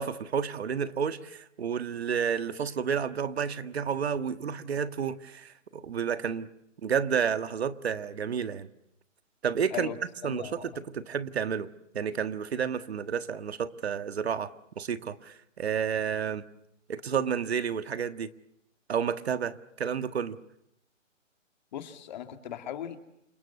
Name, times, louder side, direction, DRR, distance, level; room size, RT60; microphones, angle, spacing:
voice 1, 0.0-6.5 6.8-8.7 9.4-9.9 10.2-11.7 11.9-16.4 16.9-18.3 18.9-20.4, right 7 dB, 55° right, 11 dB, 1.6 m, -31 dB
voice 2, 10.2-10.8 21.7-23.0, left 10 dB, 35° left, 7 dB, 2.3 m, -38 dB
28.5 x 23.5 x 8.3 m, 0.80 s
hypercardioid pair, 155°, 39 cm